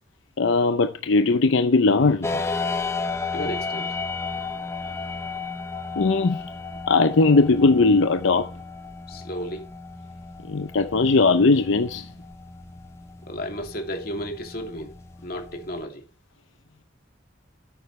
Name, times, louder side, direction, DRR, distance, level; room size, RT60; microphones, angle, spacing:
voice 1, 0.4-2.4 6.0-6.4 6.9-8.5 10.5-12.1, left 3 dB, 80° left, 0.6 m, -19 dB
sound 1, 2.2-15.8, left 4 dB, 15° left, 0.9 m, -33 dB
voice 2, 3.3-3.9 9.1-9.6 13.3-14.9 15.2-16.0, equal, 50° left, 2.8 m, -33 dB
13.0 x 8.8 x 3.3 m
head